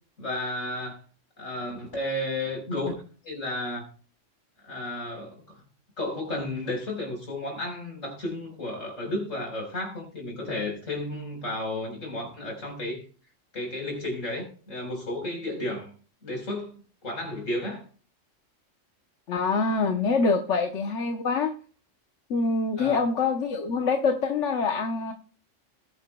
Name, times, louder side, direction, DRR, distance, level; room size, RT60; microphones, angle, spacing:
voice 1, 0.2-1.0 1.4-2.9 3.2-3.8 4.6-5.6 6.0-13.0 13.5-15.9 16.2-16.7 17.0-17.8 22.8-23.0, left 1 dB, 85° left, 4.8 m, -32 dB
voice 2, 19.3-21.5 22.3-25.1, left 4 dB, 70° left, 1.3 m, -25 dB
19.5 x 8.9 x 2.2 m
omnidirectional pair, 1.3 m